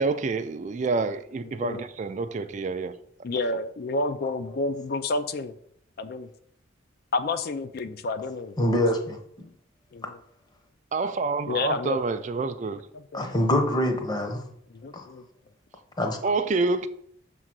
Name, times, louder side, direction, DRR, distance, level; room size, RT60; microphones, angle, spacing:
voice 1, 0.0-2.9 10.9-12.8 16.2-16.9, right 3 dB, 35° right, 10 dB, 0.3 m, -27 dB
voice 2, 3.2-5.6 6.0-6.3 7.1-8.6 9.9-10.2 11.5-12.0 13.1-13.4 14.8-15.2, left 3 dB, 50° left, 10 dB, 0.4 m, -29 dB
voice 3, 8.6-9.5 13.1-14.4 14.9-15.1 16.0-16.2, left 1 dB, 20° left, 5 dB, 0.8 m, -25 dB
6.5 x 3.8 x 6.0 m, 0.69 s
head